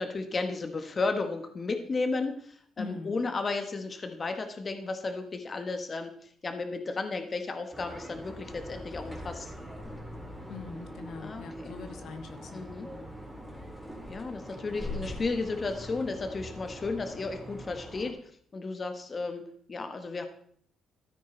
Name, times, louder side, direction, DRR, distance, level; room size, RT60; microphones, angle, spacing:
voice 1, 0.0-9.5 11.2-11.7 12.5-12.9 14.1-18.2 18.5-20.3, left 3 dB, 35° left, 6 dB, 1.4 m, -33 dB
voice 2, 2.8-3.2 10.5-13.2, left 4 dB, 70° left, 6 dB, 1.4 m, -42 dB
sound 1, 7.7-18.1, equal, ahead, 3.2 m, -42 dB
13.0 x 9.2 x 4.0 m, 0.62 s
cardioid pair, 90°, 0 cm